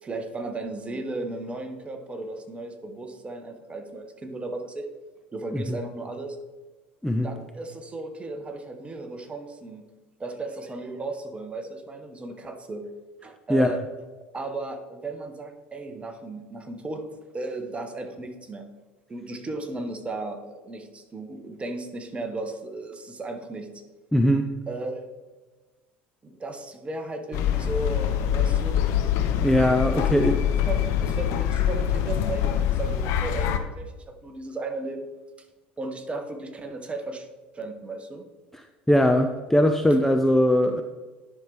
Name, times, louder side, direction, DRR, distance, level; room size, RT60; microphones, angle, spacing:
voice 1, 0.0-4.9 5.3-6.4 7.2-9.8 10.2-12.9 13.2-13.8 14.2-17.1 17.3-18.7 19.1-23.7 24.7-25.1 26.2-29.0 30.0-30.1 30.7-35.1 35.4-35.5 35.8-37.3 37.5-38.2, right 2 dB, 20° right, 6 dB, 1.2 m, -35 dB
voice 2, 24.1-24.4 29.4-30.4 38.9-40.8, equal, 5° left, 5 dB, 0.5 m, -20 dB
sound 1, 27.3-33.6, left 9 dB, 55° left, 0.7 m, -24 dB
10.5 x 6.0 x 3.4 m, 1.2 s
figure-of-eight pair, 70°, 6 cm